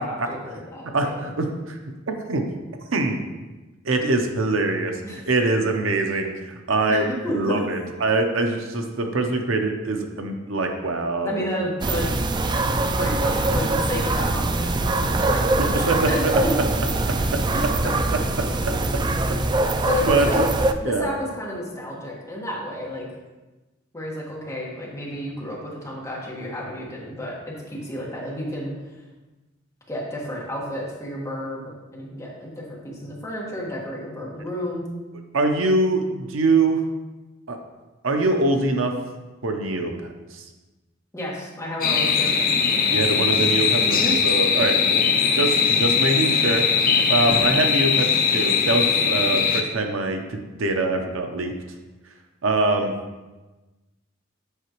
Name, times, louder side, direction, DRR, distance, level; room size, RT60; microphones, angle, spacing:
voice 1, 0.0-1.3 5.0-5.2 6.9-7.7 11.2-12.1 13.0-16.5 17.1-17.7 19.8-20.4 20.8-23.1 23.9-29.0 29.9-34.9 41.1-42.3 42.7-42.8 43.8-44.2, left 1 dB, 15° left, -5 dB, 1.5 m, -31 dB
voice 2, 0.9-1.8 2.1-2.4 2.9-3.2 3.8-5.0 5.3-11.5 15.6-16.3 17.3-17.4 18.4-18.5 18.9-19.0 20.1-20.5 20.8-21.1 35.3-36.8 37.5-37.6 38.0-38.9 39.4-40.4 42.9-45.0 45.3-46.7 47.1-48.1 48.3-51.5 52.4-52.9, right 2 dB, 75° right, 4 dB, 0.7 m, -23 dB
sound 1, 11.8-20.7, right 2 dB, 20° right, 0.3 m, -23 dB
sound 2, 41.8-49.6, left 6 dB, 45° left, 0.6 m, -20 dB
8.0 x 5.7 x 3.0 m, 1.2 s
head